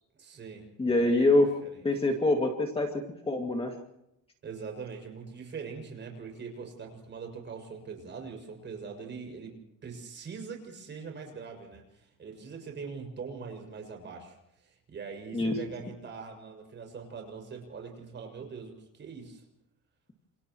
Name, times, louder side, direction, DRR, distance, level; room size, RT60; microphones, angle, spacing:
voice 1, 0.1-0.7 1.0-1.9 4.4-19.4, right 5 dB, 35° right, 2 dB, 6.6 m, -42 dB
voice 2, 0.8-1.5 1.8-2.9 3.3-3.7 15.3-15.5, left 2 dB, 15° left, 2 dB, 2.3 m, -24 dB
30.0 x 28.0 x 3.1 m, 0.80 s
cardioid pair, 170°, 33 cm